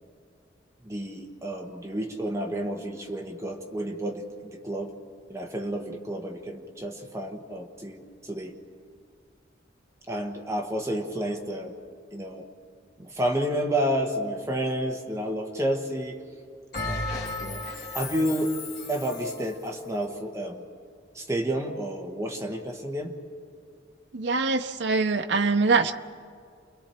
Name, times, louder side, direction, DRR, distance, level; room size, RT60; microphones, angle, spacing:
voice 1, 0.8-4.9 5.3-8.5 10.1-11.7 12.1-12.5 13.0-16.2 16.8-17.1 17.4-17.6 17.9-18.6 18.9-20.6 21.1-23.1, equal, 15° right, 2 dB, 1.2 m, -30 dB
Bell, 16.7-19.5, left 2 dB, 50° left, 3.3 m, -34 dB
voice 2, 24.1-25.9, right 4 dB, 70° right, 8 dB, 0.8 m, -23 dB
29.0 x 22.5 x 4.4 m, 2.2 s
head